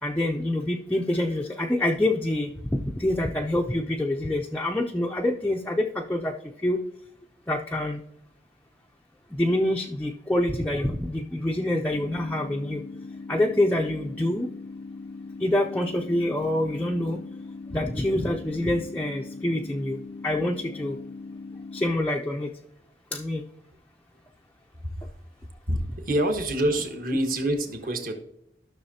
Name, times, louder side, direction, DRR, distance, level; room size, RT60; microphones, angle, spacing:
voice 1, 0.0-6.3 6.6-6.8 7.5-8.0 9.3-12.8 13.3-14.5 15.4-17.2 17.7-21.0 21.7-22.5 23.1-23.4, left 1 dB, 10° left, -1 dB, 0.4 m, -26 dB
sound 1, 11.9-21.9, left 3 dB, 80° left, 0.6 m, -40 dB
voice 2, 25.7-28.1, right 1 dB, 50° right, 4 dB, 1.4 m, -26 dB
13.0 x 6.3 x 2.8 m, 0.77 s
head